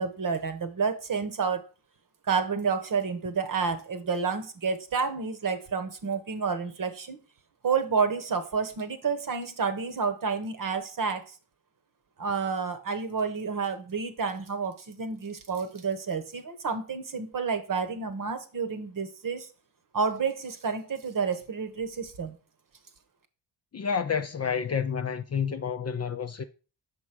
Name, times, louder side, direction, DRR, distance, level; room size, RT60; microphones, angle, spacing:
voice 1, 0.0-1.6 2.3-7.2 7.6-11.2 12.2-19.5 19.9-22.4, right 5 dB, 40° right, 1.1 m, -30 dB
voice 2, 23.7-26.4, left 7 dB, 30° left, 0.6 m, -29 dB
6.1 x 4.6 x 4.8 m
hypercardioid pair, 50°, 49 cm